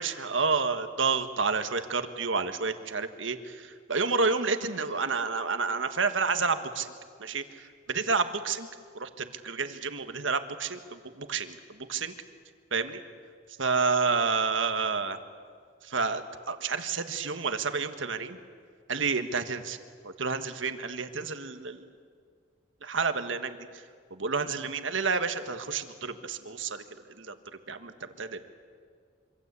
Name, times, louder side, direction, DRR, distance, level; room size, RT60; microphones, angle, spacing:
voice 1, 0.0-6.9 7.2-8.7 8.9-11.6 11.9-12.1 12.7-13.0 13.6-15.2 15.8-18.4 18.9-19.8 20.0-21.9 22.8-23.6 24.1-26.8 27.2-27.3 27.7-28.5, right 4 dB, 85° right, 8 dB, 1.6 m, -30 dB
26.0 x 25.5 x 8.3 m, 2.1 s
head